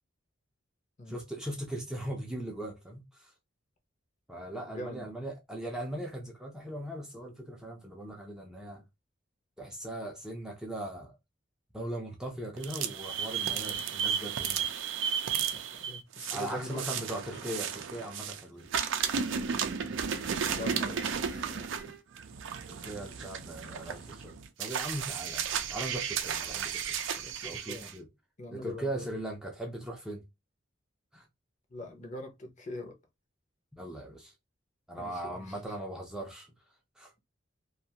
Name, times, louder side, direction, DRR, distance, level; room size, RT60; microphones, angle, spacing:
voice 1, 1.1-3.3 4.3-8.8 9.6-11.1 11.7-14.7 16.3-18.7 22.7-27.0 27.4-28.1 28.5-30.2 31.1-31.3 33.7-34.3 34.9-36.5 37.0-37.1, right 1 dB, 5° right, 0.5 m, -39 dB
voice 2, 4.6-5.3 13.4-13.7 15.4-15.5 15.7-17.0 20.4-21.9 27.2-27.9 28.4-29.2 31.7-33.0 35.0-35.8, left 1 dB, 35° left, 0.6 m, -43 dB
sound 1, 12.6-18.4 18.7-27.9, right 7 dB, 65° right, 0.4 m, -34 dB
2.5 x 2.3 x 2.8 m
head